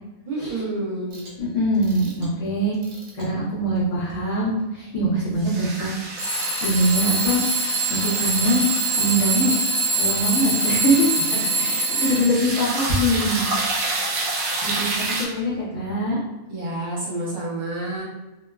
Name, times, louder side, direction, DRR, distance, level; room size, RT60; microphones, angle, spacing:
voice 1, 0.3-1.2 11.6-12.2 16.5-18.0, right 2 dB, 40° right, -6 dB, 0.9 m, -29 dB
Alarm / Clock, 1.1-1.3 1.8-2.3 2.8-3.2 4.1-4.2 6.2-12.6, right 2 dB, 65° right, 0.5 m, -24 dB
voice 2, 1.4-2.8 3.1-8.7 9.0-9.5 10.0-11.1 11.6-13.9 14.6-16.2, right 1 dB, 60° left, -8 dB, 0.9 m, -23 dB
sound 1, 5.4-15.3, right 2 dB, 80° right, 1.0 m, -30 dB
2.9 x 2.1 x 2.2 m, 1.0 s
omnidirectional pair, 1.5 m